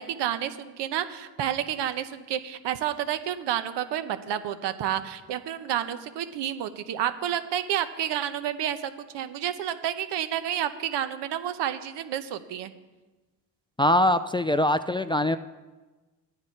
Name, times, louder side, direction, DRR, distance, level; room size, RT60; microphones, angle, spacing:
voice 1, 0.0-12.7, right 10 dB, 75° right, 10 dB, 1.0 m, -30 dB
voice 2, 13.8-15.4, left 1 dB, 15° left, 10 dB, 0.3 m, -22 dB
12.5 x 9.7 x 4.7 m, 1.2 s
cardioid pair, 75°, 42 cm